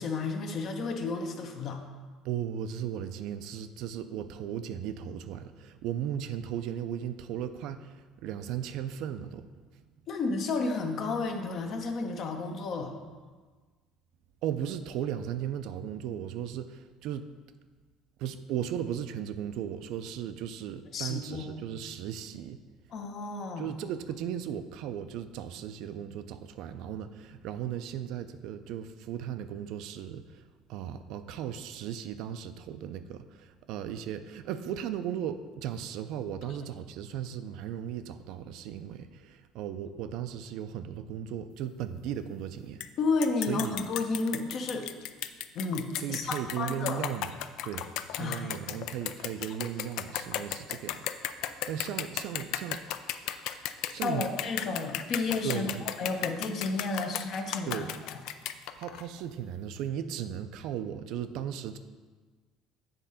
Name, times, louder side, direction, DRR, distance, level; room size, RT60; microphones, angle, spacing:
voice 1, 0.0-1.8 10.1-13.0 20.9-21.6 22.9-23.7 43.0-44.9 45.5-47.1 48.2-48.5 54.0-58.2, left 3 dB, 45° left, 4 dB, 0.8 m, -32 dB
voice 2, 2.2-9.4 14.4-17.3 18.2-22.6 23.6-30.4 30.7-42.8 43.5-43.8 46.0-47.3 47.6-47.9 48.1-52.8 53.9-54.3 55.4-55.8 57.7-57.9 58.8-61.8, right 9 dB, 65° right, 10 dB, 0.4 m, -36 dB
sound 1, 42.8-42.9 43.2-59.0, left 12 dB, 70° left, 0.3 m, -35 dB
8.1 x 3.7 x 5.6 m, 1.4 s
cardioid pair, 135°, 0 cm